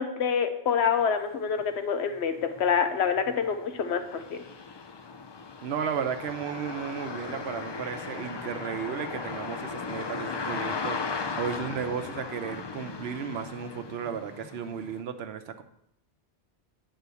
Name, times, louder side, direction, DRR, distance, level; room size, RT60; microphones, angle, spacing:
voice 1, 0.0-4.4, left 6 dB, 75° left, 8 dB, 1.1 m, -27 dB
sound 1, 1.6-1.7 2.1-15.0, left 4 dB, 40° left, 0.3 m, -37 dB
voice 2, 5.6-15.6, right 7 dB, 70° right, 8 dB, 0.9 m, -34 dB
8.2 x 3.8 x 6.8 m, 0.76 s
omnidirectional pair, 1.1 m